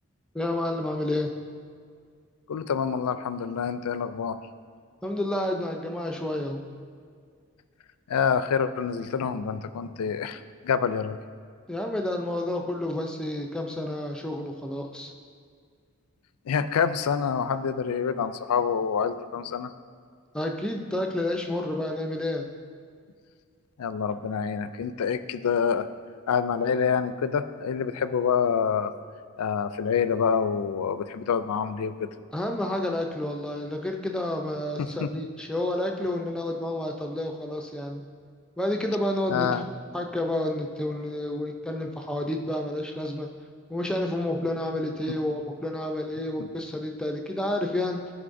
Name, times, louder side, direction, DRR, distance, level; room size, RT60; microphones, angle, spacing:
voice 1, 0.3-1.3 5.0-6.6 11.7-15.1 20.3-22.4 32.3-38.0 38.6-39.5 39.9-43.3 43.7-48.0, left 1 dB, 5° left, 2 dB, 0.4 m, -30 dB
voice 2, 2.5-4.4 8.1-11.2 16.5-19.7 23.8-25.9 26.3-28.9 29.4-32.1 35.0-35.1 39.3-39.6, left 6 dB, 90° left, 12 dB, 0.4 m, -27 dB
13.0 x 5.2 x 2.6 m, 2.1 s
head